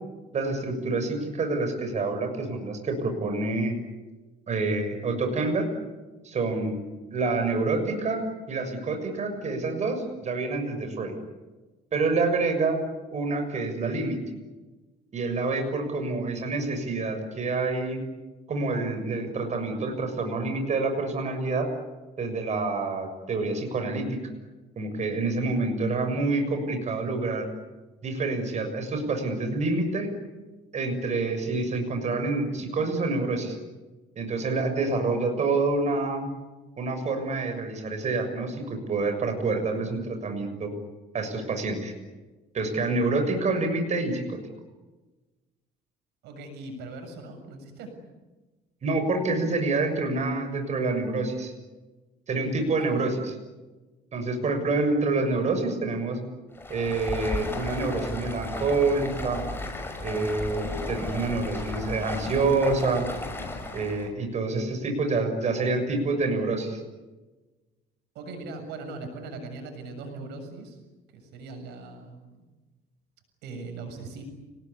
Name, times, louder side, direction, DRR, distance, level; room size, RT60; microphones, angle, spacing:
voice 1, 0.3-3.8 4.5-5.7 6.2-6.8 7.1-11.1 11.9-12.8 13.1-14.2 15.1-18.0 18.5-21.7 22.2-24.2 24.8-27.5 28.0-30.1 30.7-33.6 34.1-36.3 36.8-40.7 41.1-41.9 42.5-44.4 48.8-51.5 52.3-53.2 54.1-56.2 56.7-59.4 60.0-63.1 63.7-66.8, right 3 dB, 45° right, 6 dB, 6.7 m, -27 dB
voice 2, 46.2-47.9 52.8-53.2 68.1-70.8 71.1-72.4 73.4-74.2, right 3 dB, 85° right, 6 dB, 7.2 m, -40 dB
Stream, 56.5-64.1, left 2 dB, 15° left, 6.4 m, -34 dB
29.5 x 19.5 x 9.8 m, 1.2 s
cardioid pair, 110°, 17 cm